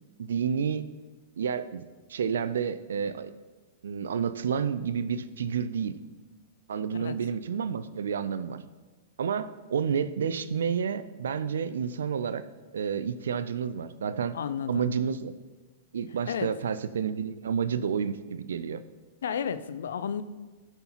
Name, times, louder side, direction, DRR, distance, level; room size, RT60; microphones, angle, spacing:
voice 1, 0.2-0.9 1.4-1.8 2.1-3.3 3.8-5.9 6.7-8.6 9.2-12.4 12.7-14.3 14.7-15.3 15.9-18.8, right 7 dB, 80° right, 14 dB, 0.5 m, -30 dB
voice 2, 14.3-14.9 16.3-16.5 19.2-20.2, left 7 dB, 75° left, 13 dB, 0.5 m, -32 dB
15.0 x 5.7 x 3.0 m, 1.3 s
hypercardioid pair, 115°, 0 cm